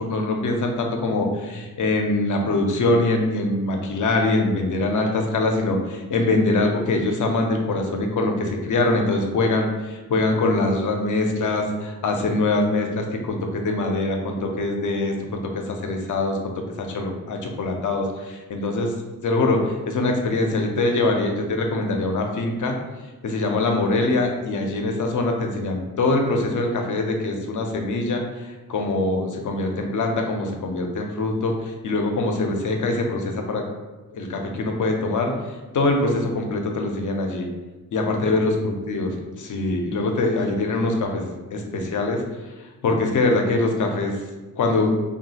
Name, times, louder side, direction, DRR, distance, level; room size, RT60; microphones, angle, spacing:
voice 1, 0.0-16.4 16.8-18.9 19.2-22.7 23.2-33.6 34.1-35.3 35.7-37.5 37.9-42.2 42.8-44.2 44.6-44.9, left 2 dB, 55° left, 3 dB, 0.6 m, -23 dB
2.9 x 2.3 x 2.8 m, 1.2 s
supercardioid pair, 50°, 36 cm